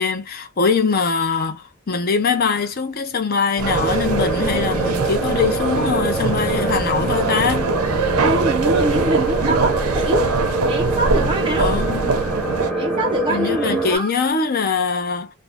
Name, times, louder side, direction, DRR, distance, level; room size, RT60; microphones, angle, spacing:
voice 1, 0.0-7.7 11.6-12.2 13.3-15.3, left 5 dB, 40° left, 0.5 m, -22 dB
sound 1, 3.6-14.0, right 2 dB, 5° left, 0.8 m, -24 dB
sound 2, 3.6-12.7, right 4 dB, 85° right, 0.6 m, -23 dB
voice 2, 8.2-10.3 10.6-11.7 12.7-14.1, right 1 dB, 20° right, 0.3 m, -24 dB
2.5 x 2.1 x 3.2 m
head